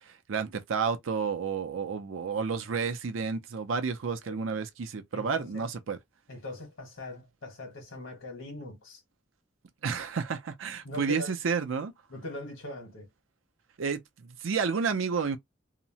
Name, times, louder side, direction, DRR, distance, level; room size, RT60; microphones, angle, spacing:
voice 1, 0.1-6.0 9.8-11.9 13.8-15.4, right 5 dB, 80° right, 0.5 m, -31 dB
voice 2, 5.1-5.7 6.3-9.0 10.8-11.3 12.1-13.1, left 1 dB, 75° left, 1.4 m, -41 dB
2.8 x 2.0 x 2.7 m
head